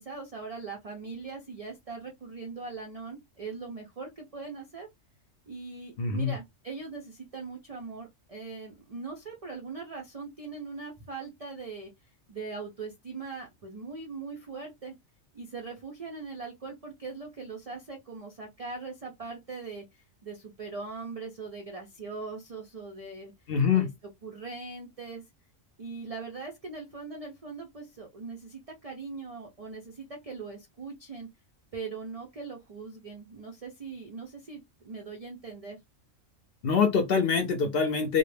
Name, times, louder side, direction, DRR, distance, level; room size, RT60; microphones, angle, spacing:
voice 1, 0.0-4.9 5.5-14.9 15.3-23.3 23.7-23.9 24.2-25.2 25.8-31.3 31.7-35.8, right 4 dB, 70° right, 0.3 m, -41 dB
voice 2, 6.0-6.3 23.5-23.9 36.6-38.2, left 6 dB, 60° left, 0.6 m, -24 dB
2.3 x 2.0 x 3.2 m
omnidirectional pair, 1.3 m